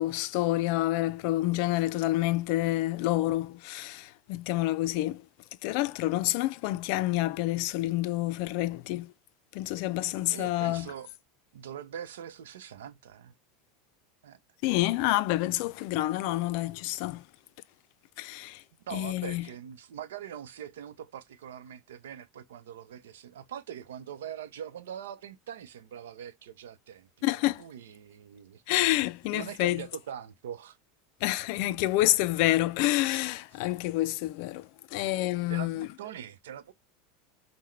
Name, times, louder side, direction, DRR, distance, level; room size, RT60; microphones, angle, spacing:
voice 1, 0.0-5.2 5.6-9.1 9.5-10.9 14.6-17.2 18.2-18.6 18.9-19.5 27.2-27.6 28.7-29.8 31.2-35.9, left 16 dB, 65° left, 0.4 m, -28 dB
voice 2, 10.3-11.1 11.5-13.3 14.2-14.4 18.8-27.1 27.6-28.6 29.3-30.8 33.5-33.6 35.5-36.7, right 9 dB, 85° right, 0.6 m, -42 dB
5.6 x 2.1 x 3.2 m
supercardioid pair, 110°, 0 cm